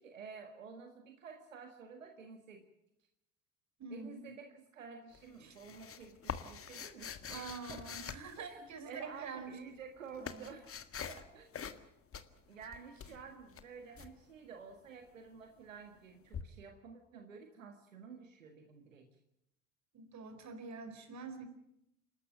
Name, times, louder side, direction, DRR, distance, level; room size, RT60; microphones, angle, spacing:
voice 1, 0.0-2.7 3.9-7.8 8.4-8.6 8.9-10.7 11.1-11.5 12.5-19.1, right 6 dB, 90° right, 4 dB, 1.8 m, -51 dB
voice 2, 3.8-4.3 5.4-5.6 7.3-9.5 10.2-10.5 19.9-21.4, right 4 dB, 45° right, 8 dB, 4.7 m, -46 dB
sound 1, 5.1-9.0 9.7-11.3 11.5-11.9 12.1-14.1 16.3-16.4, left 7 dB, 35° left, 1.9 m, -45 dB
28.0 x 13.0 x 9.0 m, 0.82 s
hypercardioid pair, 60°, 38 cm